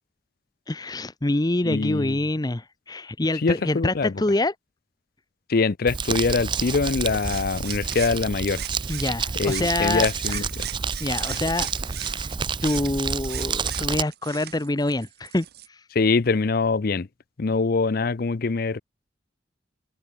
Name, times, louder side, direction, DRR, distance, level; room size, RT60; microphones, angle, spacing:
voice 1, 0.7-4.5 8.9-10.4 11.0-11.7 12.0-12.3 12.6-15.8, left 2 dB, 20° left, 0.8 m, -26 dB
voice 2, 1.6-2.2 3.3-4.1 5.5-8.6 9.3-10.7 15.9-17.1 17.4-18.8, left 4 dB, 55° left, 0.6 m, -24 dB
Crumpling crinkling, 5.9-14.0, right 5 dB, 25° right, 0.5 m, -29 dB
sound 1, 7.0-9.1 9.4-15.7, right 13 dB, 55° right, 0.9 m, -39 dB
head